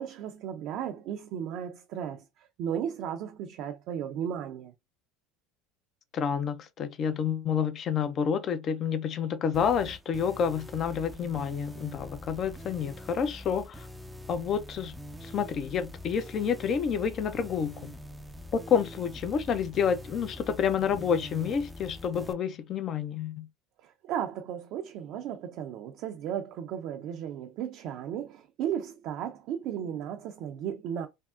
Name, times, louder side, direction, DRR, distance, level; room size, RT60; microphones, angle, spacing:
voice 1, 0.0-2.3 2.6-4.7 23.8-31.1, right 9 dB, 60° right, 0.5 m, -35 dB
voice 2, 6.1-13.9 14.3-14.9 15.2-17.9 18.5-23.5, left 7 dB, 45° left, 0.5 m, -29 dB
sound 1, 9.5-22.3, left 1 dB, 5° right, 0.4 m, -44 dB
3.4 x 2.0 x 2.4 m
hypercardioid pair, 90°, 0 cm